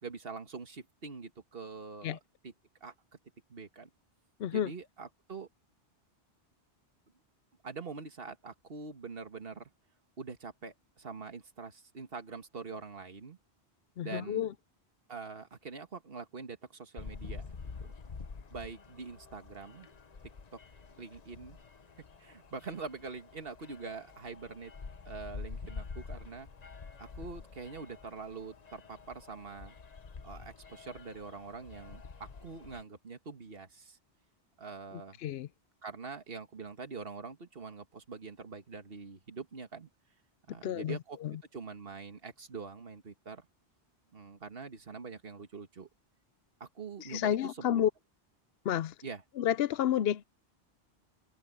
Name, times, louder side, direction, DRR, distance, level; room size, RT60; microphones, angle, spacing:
voice 1, 0.0-2.5 2.8-2.9 3.5-3.9 4.5-5.5 7.6-9.7 10.2-13.4 14.0-14.5 15.1-17.9 18.5-19.9 21.0-21.6 22.2-24.7 25.1-26.5 27.0-29.8 30.2-34.0 34.6-35.2 35.8-39.9 40.5-41.2 41.5-43.5 44.1-45.9 46.6-47.9 49.0-49.2, right 4 dB, 55° right, 1.9 m, -44 dB
voice 2, 14.0-14.5 35.2-35.5 40.6-41.3 47.0-47.9 48.7-48.9 49.4-50.2, left 10 dB, 65° left, 0.8 m, -30 dB
sound 1, 17.0-32.8, left 5 dB, 40° left, 0.9 m, -47 dB
omnidirectional pair, 1.2 m